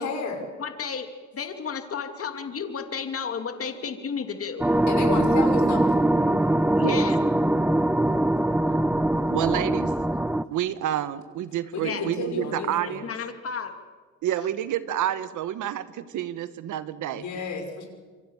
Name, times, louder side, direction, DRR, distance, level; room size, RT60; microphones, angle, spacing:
voice 1, 0.0-0.4 4.9-5.9 11.7-13.0 17.1-17.9, left 4 dB, 70° left, 3 dB, 5.9 m, -31 dB
voice 2, 0.6-4.6 6.8-7.2 11.8-12.1 12.8-13.7, left 6 dB, 50° left, 6 dB, 2.7 m, -33 dB
sound 1, 4.6-10.4, right 1 dB, 5° right, 0.8 m, -22 dB
voice 3, 9.3-9.9 10.5-13.1 14.2-17.3, right 11 dB, 80° right, 13 dB, 1.4 m, -29 dB
27.0 x 24.5 x 7.2 m, 1.4 s
cardioid pair, 90°, 30 cm